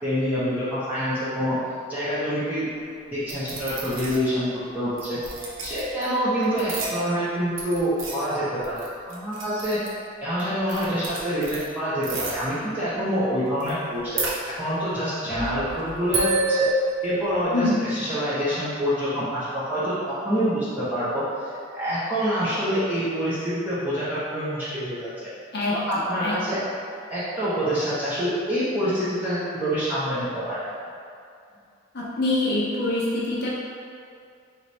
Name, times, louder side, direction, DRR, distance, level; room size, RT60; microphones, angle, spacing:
voice 1, 0.0-1.5 1.9-2.7 3.1-5.2 5.6-8.8 9.1-9.8 10.2-14.2 14.6-16.7 17.0-25.3 25.7-26.6 27.1-30.7, equal, 10° right, -13 dB, 0.8 m, -26 dB
sound 1, 3.3-4.3 5.0-6.1 6.4-7.3 7.6-10.1 10.4-10.5 10.7-11.6 12.0-12.4 13.6-13.7 14.0-14.9 15.3-17.4, right 2 dB, 75° right, 0.7 m, -29 dB
voice 2, 17.5-17.8 25.5-26.6 31.9-33.5, left 2 dB, 55° left, -6 dB, 0.6 m, -25 dB
3.1 x 3.1 x 4.1 m, 2.4 s
head